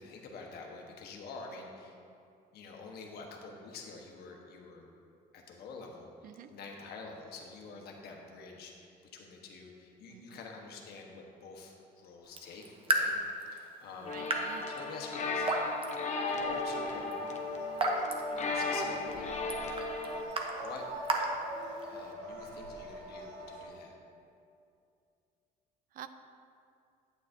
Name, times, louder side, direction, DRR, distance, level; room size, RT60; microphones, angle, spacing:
voice 1, 0.0-2.0 2.5-4.9 5.3-14.2 14.7-15.5 16.3-17.2 18.3-19.8 20.6-20.8 21.9-23.9, left 4 dB, 70° left, 1 dB, 1.2 m, -48 dB
voice 2, 10.1-10.4 14.0-14.7 16.3-16.4 25.9-26.1, right 10 dB, 55° right, 10 dB, 0.5 m, -48 dB
Raindrop / Drip, 12.2-22.1, right 2 dB, 30° right, 0.9 m, -37 dB
sound 1, 14.0-20.2, left 3 dB, 45° left, 0.8 m, -36 dB
sound 2, 16.3-23.7, left 1 dB, 85° right, 1.3 m, -43 dB
9.1 x 8.5 x 2.7 m, 2.5 s
cardioid pair, 110°, 17 cm